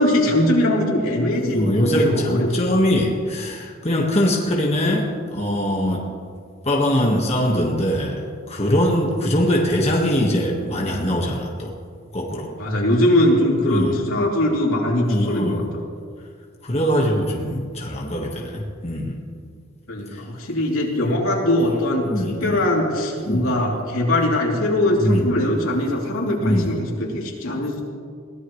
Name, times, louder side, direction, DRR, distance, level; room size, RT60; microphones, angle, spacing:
voice 1, 0.0-2.5 12.6-15.8 19.9-22.1 22.4-27.8, left 1 dB, 90° left, -2 dB, 3.3 m, -21 dB
voice 2, 1.4-5.1 5.3-6.0 6.7-8.2 8.5-11.7 12.1-12.5 13.7-13.9 15.1-15.6 16.6-19.1 22.1-22.6 23.3-23.4 25.0-25.2 26.4-26.7, equal, 30° left, -1 dB, 1.6 m, -21 dB
22.0 x 17.5 x 3.2 m, 2.1 s
head